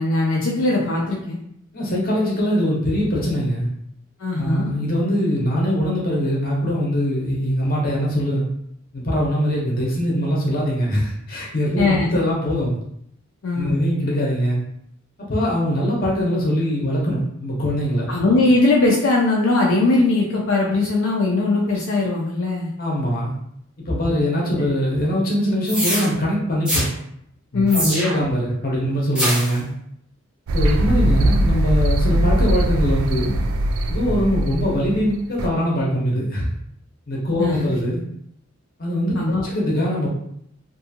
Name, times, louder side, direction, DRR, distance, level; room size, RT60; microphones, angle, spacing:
voice 1, 0.0-1.4 4.2-4.7 11.8-12.1 13.4-13.8 18.1-22.7 24.6-24.7 27.5-28.0 37.4-37.6 39.1-39.4, left 2 dB, 70° left, -3 dB, 0.4 m, -20 dB
voice 2, 1.7-3.7 4.4-8.5 8.9-12.8 13.5-14.6 15.3-18.1 22.8-23.3 23.9-26.9 27.5-29.7 30.5-33.3 33.9-36.5 37.1-38.0 38.8-40.1, equal, 45° left, -3 dB, 0.8 m, -22 dB
sound 1, 25.7-26.1 26.7-26.9 27.7-28.3 29.2-29.6, equal, 5° right, 0.6 m, -23 dB
sound 2, 30.5-35.5, right 1 dB, 80° right, 0.3 m, -20 dB
2.6 x 2.4 x 2.7 m, 0.71 s
head